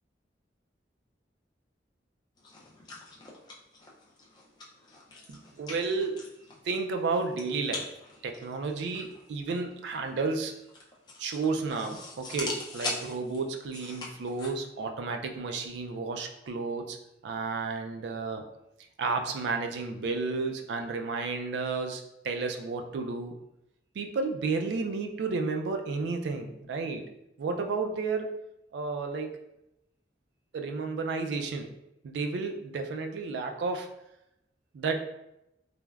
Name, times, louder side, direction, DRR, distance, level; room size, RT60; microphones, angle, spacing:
sound 1, 2.4-14.5, left 2 dB, 25° left, 0.4 m, -42 dB
voice 1, 5.3-6.3 6.6-7.9 8.2-10.5 11.2-17.0 17.2-18.5 19.0-23.4 24.0-27.1 27.4-28.3 28.7-29.4 30.5-31.7 32.0-33.9 34.7-35.0, right 4 dB, 70° right, 5 dB, 0.3 m, -32 dB
3.2 x 2.0 x 2.3 m, 0.85 s
head